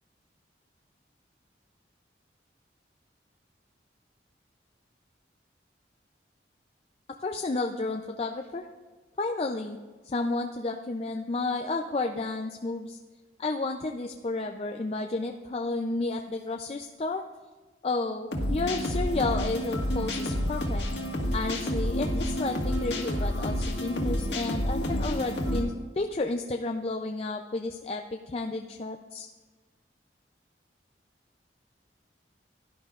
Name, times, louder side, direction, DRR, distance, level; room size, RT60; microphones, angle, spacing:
voice 1, 7.2-8.7 9.2-9.8 10.0-13.0 13.4-17.2 17.8-20.9 21.3-29.3, left 3 dB, 35° left, 3 dB, 0.4 m, -31 dB
sound 1, 18.3-25.6, equal, 75° left, 1.7 m, -29 dB
17.0 x 11.0 x 2.4 m, 1.4 s
head